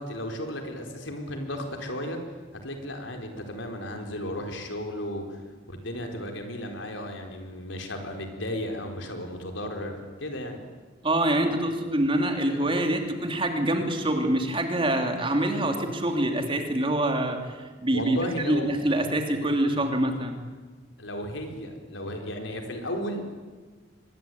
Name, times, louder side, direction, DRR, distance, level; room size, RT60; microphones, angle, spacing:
voice 1, 0.0-2.2 2.5-5.4 5.7-10.7 17.9-18.7 21.0-23.3, left 1 dB, 85° left, 4 dB, 4.5 m, -34 dB
voice 2, 11.0-20.4, right 1 dB, 30° right, 4 dB, 3.1 m, -25 dB
25.0 x 21.0 x 9.4 m, 1.3 s
head